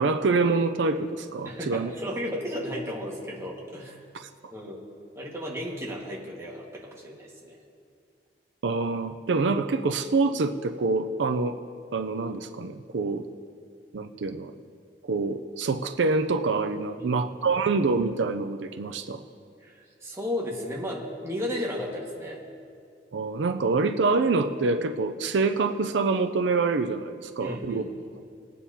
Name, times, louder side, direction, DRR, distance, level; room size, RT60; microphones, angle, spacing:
voice 1, 0.0-1.9 4.1-4.3 8.6-11.6 11.9-13.3 13.9-14.5 15.0-19.2 23.1-27.8, right 3 dB, 90° right, 8 dB, 0.5 m, -26 dB
voice 2, 1.4-4.1 4.5-4.8 5.1-7.6 16.9-17.2 19.6-22.4 27.4-27.9, left 1 dB, 15° right, -3 dB, 1.7 m, -34 dB
20.5 x 9.2 x 2.8 m, 2.3 s
head